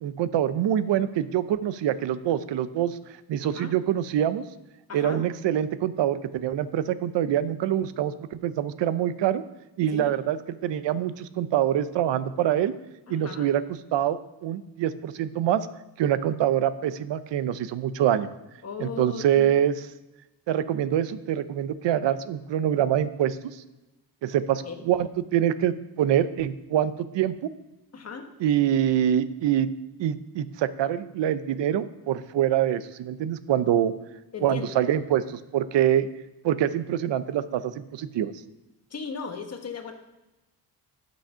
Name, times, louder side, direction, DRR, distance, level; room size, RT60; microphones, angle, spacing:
voice 1, 0.0-3.0 3.3-4.5 4.9-9.4 9.8-10.4 10.6-12.7 13.1-13.6 13.9-15.7 16.0-18.3 18.8-19.7 20.5-23.6 24.2-27.3 28.4-29.7 30.0-33.9 34.4-36.1 36.4-38.3, right 10 dB, 80° right, 14 dB, 0.7 m, -25 dB
voice 2, 4.9-5.2 9.9-10.1 13.1-13.5 18.6-19.5 24.5-24.8 27.9-28.3 34.3-34.7 38.9-39.9, left 5 dB, 35° left, 5 dB, 1.1 m, -37 dB
11.5 x 6.4 x 5.6 m, 1.0 s
wide cardioid pair, 165°, 42 cm